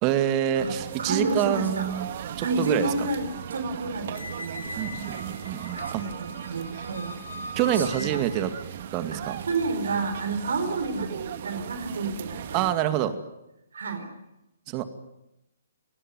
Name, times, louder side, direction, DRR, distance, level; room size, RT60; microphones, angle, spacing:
voice 1, 0.0-2.1 2.4-3.1 4.8-6.0 7.6-8.5 8.9-9.4 12.5-13.2 14.7-14.8, right 11 dB, 30° right, 9 dB, 2.2 m, -26 dB
sound 1, 0.6-12.7, right 9 dB, 50° right, 2.3 m, -38 dB
voice 2, 1.0-1.9 2.4-4.8 5.7-7.2 7.7-8.2 9.1-9.2 9.5-12.9 13.7-14.1, right 3 dB, 65° right, 8 dB, 4.3 m, -30 dB
Squeak, 4.1-8.6, left 1 dB, 85° left, 4.8 m, -40 dB
29.0 x 19.0 x 9.4 m, 0.91 s
figure-of-eight pair, 135°, 0 cm